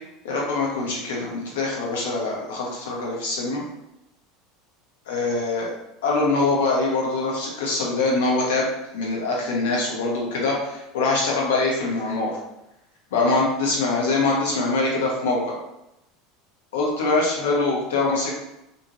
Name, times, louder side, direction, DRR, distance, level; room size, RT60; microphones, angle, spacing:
voice 1, 0.2-3.6 5.1-5.7 6.0-12.4 13.1-15.6 16.7-18.4, left 3 dB, 70° left, -3 dB, 0.9 m, -23 dB
2.6 x 2.5 x 2.9 m, 0.89 s
figure-of-eight pair, 75°, 0 cm